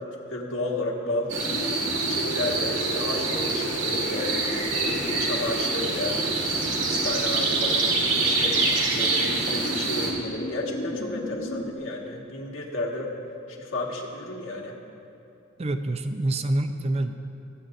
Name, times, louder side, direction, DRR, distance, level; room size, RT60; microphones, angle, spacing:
voice 1, 0.0-1.3 2.0-4.3 4.9-6.2 6.8-13.1 13.5-14.8, left 2 dB, 90° left, -1 dB, 1.7 m, -32 dB
sound 1, 1.3-11.7, equal, 55° left, 0.9 m, -36 dB
sound 2, 1.3-10.1, right 3 dB, 75° right, 1.9 m, -26 dB
voice 2, 15.6-17.1, right 1 dB, 30° right, 8 dB, 0.4 m, -26 dB
25.0 x 8.8 x 2.6 m, 2.7 s
head